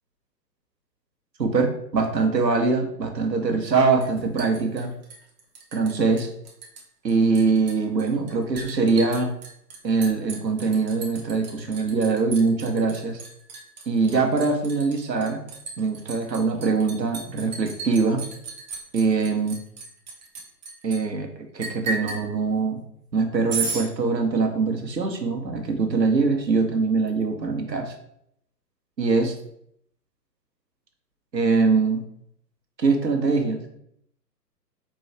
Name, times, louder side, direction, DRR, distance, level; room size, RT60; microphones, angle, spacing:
voice 1, 1.4-4.9 5.7-6.3 7.0-9.3 9.8-13.2 13.9-15.4 15.8-18.2 18.9-19.6 20.8-21.3 21.5-22.8 23.1-27.9 29.0-29.4 31.3-32.0 32.8-33.6, right 4 dB, 80° right, 4 dB, 0.9 m, -23 dB
Liquid, 4.0-5.9 6.2-6.8 7.1-21.0 21.6-22.2 23.5-23.9, right 4 dB, 25° right, 0.7 m, -35 dB
4.5 x 2.3 x 4.4 m, 0.72 s
figure-of-eight pair, 125°, 50 cm